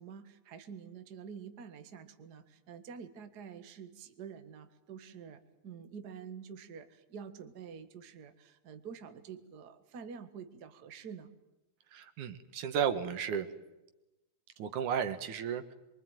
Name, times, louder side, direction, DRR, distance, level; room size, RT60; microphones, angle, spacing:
voice 1, 0.0-11.3, right 6 dB, 40° right, 8 dB, 1.8 m, -48 dB
voice 2, 11.9-13.5 14.6-15.7, right 8 dB, 85° right, 9 dB, 3.1 m, -33 dB
25.0 x 24.0 x 9.2 m, 1.0 s
omnidirectional pair, 3.4 m